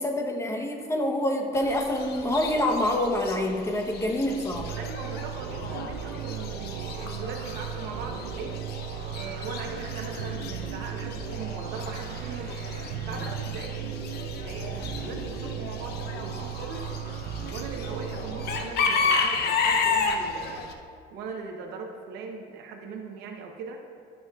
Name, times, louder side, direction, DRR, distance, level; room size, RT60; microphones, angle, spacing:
voice 1, 0.0-4.7, left 1 dB, 15° left, 2 dB, 0.9 m, -26 dB
Chicken rooster / Bird, 1.5-20.7, left 5 dB, 70° left, 0.7 m, -33 dB
sound 1, 4.5-18.7, right 9 dB, 70° right, 0.4 m, -36 dB
voice 2, 4.8-8.6 9.1-12.6 13.1-16.9 17.5-20.7 21.1-23.8, right 4 dB, 85° right, 2 dB, 0.8 m, -39 dB
13.0 x 6.1 x 2.3 m, 2.3 s
cardioid pair, 110°, 17 cm